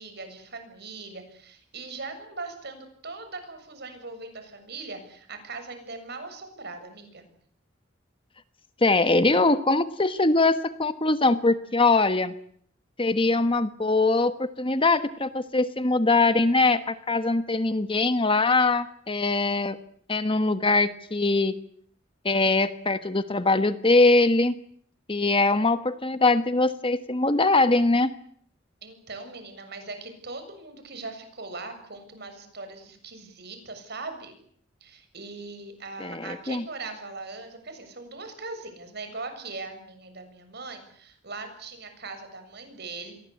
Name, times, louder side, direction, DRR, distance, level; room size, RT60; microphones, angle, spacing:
voice 1, 0.0-7.2 28.8-34.3 34.8-43.1, right 3 dB, 55° right, 8 dB, 7.3 m, -40 dB
voice 2, 8.8-12.3 13.0-19.8 20.1-21.6 22.2-24.5 25.1-28.1 36.0-36.6, left 3 dB, 25° left, 11 dB, 1.3 m, -22 dB
29.0 x 22.5 x 8.4 m, 0.63 s
head